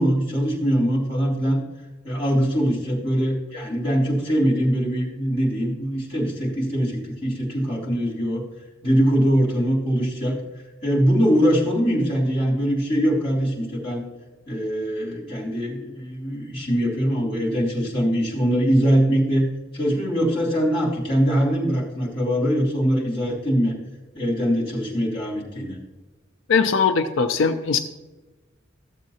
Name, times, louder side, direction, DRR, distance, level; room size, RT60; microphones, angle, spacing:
voice 1, 0.0-1.6 2.0-8.4 8.8-10.4 10.8-14.0 14.5-19.5 19.7-23.7 24.1-25.8, equal, 25° left, -5 dB, 2.9 m, -22 dB
voice 2, 26.5-27.8, left 5 dB, 85° left, 7 dB, 0.5 m, -20 dB
14.5 x 7.3 x 2.8 m, 1.2 s
head